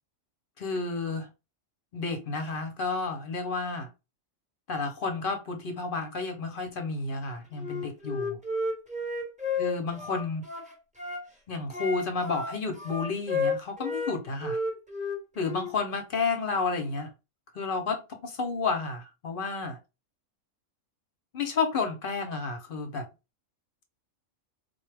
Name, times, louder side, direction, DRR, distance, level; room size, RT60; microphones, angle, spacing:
voice 1, 0.6-1.3 1.9-3.9 4.7-8.4 9.6-10.4 11.5-14.6 15.3-17.1 17.5-19.8 21.3-23.1, left 4 dB, 50° left, 0.7 m, -31 dB
Wind instrument woodwind instrument, 7.6-11.2 11.7-14.2 14.4-15.7, left 3 dB, 5° right, 0.7 m, -32 dB
3.9 x 2.2 x 3.3 m
omnidirectional pair, 1.4 m